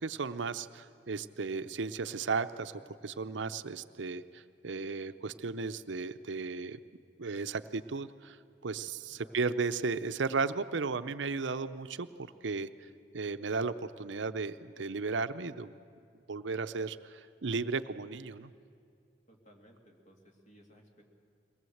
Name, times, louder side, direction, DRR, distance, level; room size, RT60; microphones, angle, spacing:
voice 1, 0.0-6.8 7.2-8.4 8.6-12.9 13.1-15.8 16.3-18.5, right 4 dB, 80° right, 12 dB, 0.7 m, -35 dB
voice 2, 19.3-21.0, equal, 40° left, 1 dB, 2.8 m, -60 dB
22.5 x 19.0 x 7.9 m, 2.4 s
head